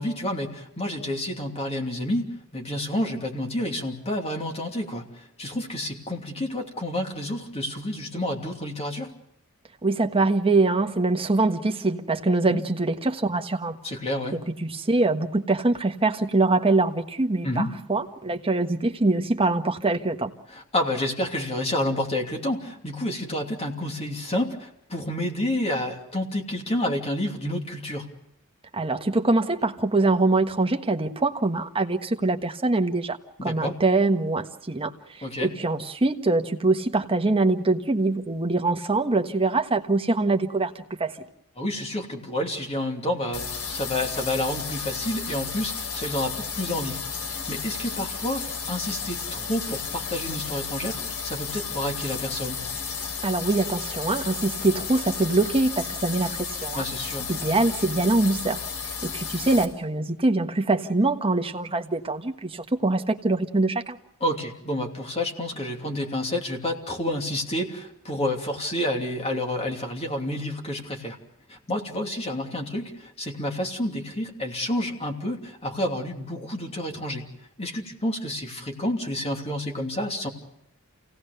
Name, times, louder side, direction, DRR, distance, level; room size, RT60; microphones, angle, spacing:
voice 1, 0.0-9.1 12.5-12.6 13.8-14.4 17.4-17.7 20.5-28.1 33.4-33.8 35.2-35.5 41.6-52.6 56.7-57.3 64.2-71.2 71.5-77.3 77.6-80.3, left 1 dB, 30° left, 2 dB, 2.9 m, -29 dB
voice 2, 9.8-13.8 14.6-20.3 28.7-41.2 53.2-56.8 57.3-58.6 59.0-64.0, right 2 dB, 25° right, 5 dB, 1.4 m, -24 dB
sound 1, 43.3-59.6, left 6 dB, 75° left, 3.5 m, -33 dB
28.0 x 18.0 x 6.8 m, 0.80 s
head